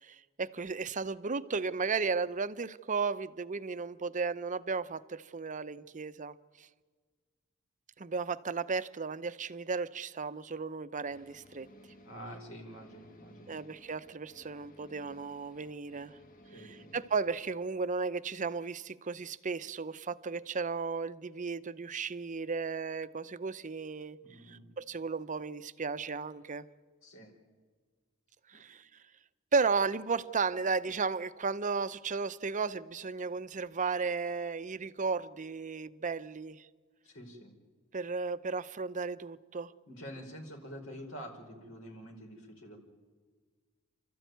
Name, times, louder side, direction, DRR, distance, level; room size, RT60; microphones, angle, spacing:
voice 1, 0.0-6.7 8.0-11.7 13.5-16.2 16.5-24.2 24.5-26.7 28.5-28.9 29.5-36.7 37.9-39.7, right 4 dB, 35° right, 0.7 m, -34 dB
sound 1, 11.0-17.4, equal, 40° left, 1.7 m, -57 dB
voice 2, 12.0-13.6 16.5-17.0 24.2-24.7 27.0-27.3 28.5-28.6 37.0-37.5 39.9-42.8, equal, 70° left, 4.7 m, -47 dB
29.0 x 13.5 x 9.3 m
head